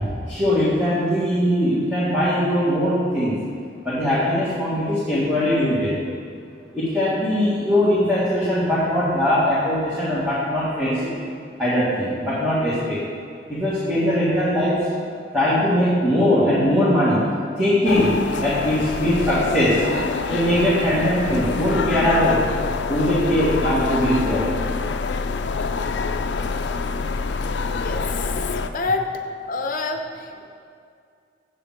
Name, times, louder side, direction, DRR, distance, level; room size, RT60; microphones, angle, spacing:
voice 1, 0.0-3.4 3.8-6.0 6.7-11.2 11.6-13.0 13.5-14.9 15.3-17.2 17.6-18.2 18.4-19.9 20.3-22.4 22.9-24.5, equal, 10° right, -10 dB, 1.8 m, -20 dB
sound 1, 17.9-28.7, left 4 dB, 80° left, 0.5 m, -26 dB
voice 2, 27.8-29.1 29.5-30.5, left 3 dB, 50° left, 5 dB, 0.8 m, -28 dB
7.6 x 6.6 x 7.3 m, 2.3 s
head